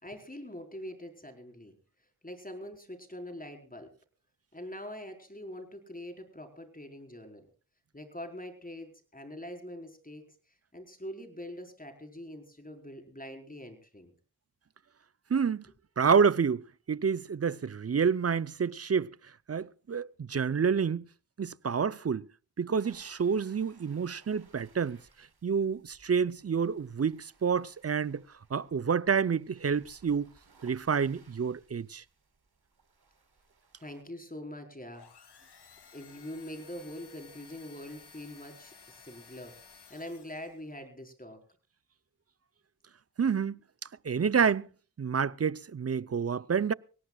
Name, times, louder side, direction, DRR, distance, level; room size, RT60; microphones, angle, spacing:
voice 1, 0.0-1.7 2.2-3.9 4.5-7.5 7.9-10.2 10.7-14.1 33.8-35.1 35.9-41.4, left 1 dB, 20° left, 4.5 m, -44 dB
voice 2, 15.3-15.7 16.0-19.1 19.5-21.0 21.4-22.3 22.6-25.0 25.4-28.2 28.5-30.3 30.6-32.0 43.2-43.6 44.0-44.7 45.0-46.7, right 6 dB, 40° right, 0.6 m, -28 dB
sound 1, 22.8-34.0, right 4 dB, 70° right, 4.4 m, -64 dB
sound 2, 34.9-40.7, left 5 dB, 90° left, 2.7 m, -55 dB
24.5 x 17.5 x 2.4 m
cardioid pair, 40°, 39 cm